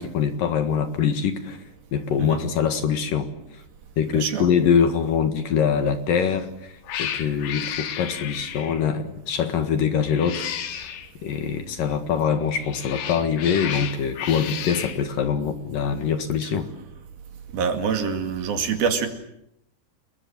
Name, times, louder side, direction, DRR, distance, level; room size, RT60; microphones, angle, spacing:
voice 1, 0.0-1.6 1.9-3.3 4.0-11.0 11.2-16.7, left 7 dB, 60° left, 8 dB, 3.1 m, -24 dB
voice 2, 4.1-4.5 17.5-19.1, right 6 dB, 60° right, 7 dB, 3.9 m, -25 dB
Cat, 6.1-6.4 6.9-8.9 10.0-11.1 12.4-15.0, left 9 dB, 80° left, 4.1 m, -33 dB
29.5 x 21.5 x 8.8 m, 0.76 s
omnidirectional pair, 4.9 m